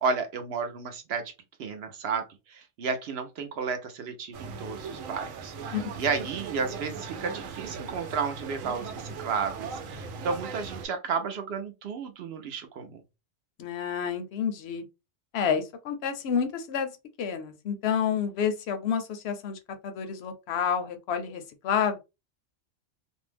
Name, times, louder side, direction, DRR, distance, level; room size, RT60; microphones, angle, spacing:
voice 1, 0.0-1.3 1.6-13.0, right 5 dB, 65° right, 0.7 m, -32 dB
sound 1, 4.3-10.9, right 5 dB, 85° right, 1.0 m, -39 dB
voice 2, 13.6-14.9 15.3-16.9 17.2-22.0, left 7 dB, 65° left, 0.7 m, -29 dB
2.6 x 2.1 x 3.2 m
omnidirectional pair, 1.3 m